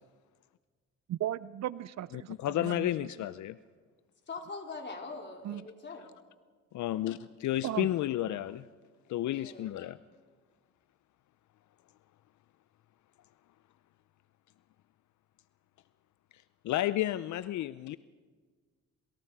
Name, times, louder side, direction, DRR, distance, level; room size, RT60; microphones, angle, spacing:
voice 1, 1.1-2.9 5.4-5.7 7.6-7.9, right 12 dB, 65° right, 19 dB, 0.6 m, -36 dB
voice 2, 2.1-3.6 6.7-8.7 9.1-10.0 16.3-18.0, left 13 dB, 70° left, 15 dB, 0.6 m, -32 dB
voice 3, 4.3-6.1 9.3-9.9, left 4 dB, 35° left, 2 dB, 4.0 m, -43 dB
27.0 x 25.5 x 4.8 m, 1.5 s
cardioid pair, 90°, 30 cm